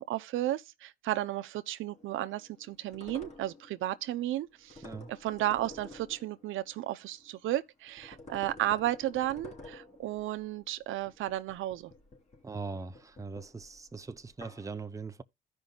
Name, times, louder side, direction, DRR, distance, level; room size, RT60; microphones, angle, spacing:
voice 1, 0.0-4.8 5.1-11.9, right 14 dB, 85° right, 0.7 m, -33 dB
sound 1, 1.9-7.5 7.9-14.7, left 2 dB, 35° left, 2.9 m, -52 dB
voice 2, 12.4-15.2, right 4 dB, 15° right, 0.7 m, -41 dB
15.0 x 5.3 x 2.4 m
cardioid pair, 90°, 20 cm